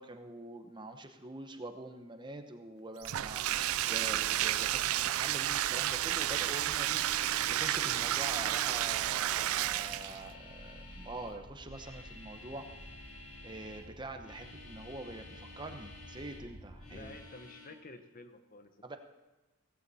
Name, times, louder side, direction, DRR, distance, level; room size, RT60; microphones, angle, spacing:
voice 1, 0.0-12.7 13.4-17.2 18.8-19.0, right 2 dB, 20° right, 6 dB, 0.9 m, -45 dB
sound 1, 3.0-17.2, equal, 55° left, 4.7 m, -53 dB
Bathtub (filling or washing), 3.0-10.3, right 13 dB, 70° right, 0.4 m, -31 dB
sound 2, 6.7-13.9 14.2-16.5 16.8-17.7, left 3 dB, 80° left, 4.8 m, -52 dB
voice 2, 16.9-19.0, left 2 dB, 40° left, 8 dB, 0.9 m, -51 dB
16.5 x 15.5 x 4.2 m, 1.1 s
head